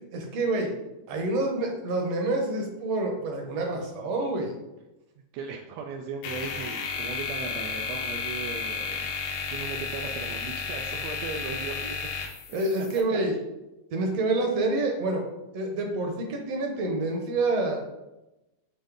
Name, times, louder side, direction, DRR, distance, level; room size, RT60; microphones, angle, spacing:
voice 1, 0.1-0.7 1.1-4.5 12.5-13.4 13.9-15.2 15.5-17.9, right 2 dB, 65° right, 2 dB, 1.8 m, -27 dB
voice 2, 5.3-9.1 9.5-12.0 12.5-12.7, right 5 dB, 85° right, 2 dB, 1.5 m, -37 dB
sound 1, 6.2-13.0, left 5 dB, 85° left, 2.4 m, -33 dB
7.9 x 2.6 x 5.1 m, 0.97 s
omnidirectional pair, 3.6 m